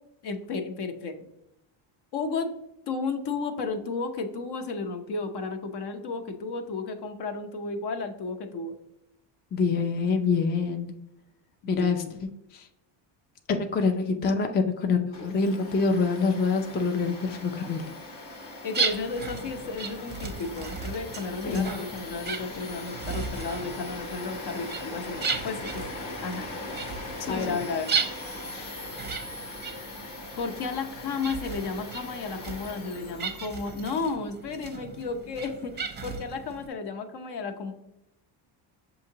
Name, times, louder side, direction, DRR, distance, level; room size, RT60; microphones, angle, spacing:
voice 1, 0.2-1.2 2.1-2.5 2.9-8.7 11.6-12.1 18.6-25.8 26.2-26.5 27.3-27.9 30.4-37.7, left 4 dB, 55° left, 6 dB, 0.8 m, -33 dB
voice 2, 9.5-10.9 11.7-12.0 12.5-12.7 13.5-17.8 21.4-21.7 27.2-27.6 28.5-28.7, left 4 dB, 25° left, 5 dB, 0.3 m, -26 dB
Domestic sounds home sounds, 15.1-34.0, left 2 dB, 85° left, 1.4 m, -40 dB
sound 1, 18.7-36.7, right 5 dB, 20° right, 0.6 m, -36 dB
6.3 x 2.8 x 2.8 m, 0.87 s
cardioid pair, 95°, 49 cm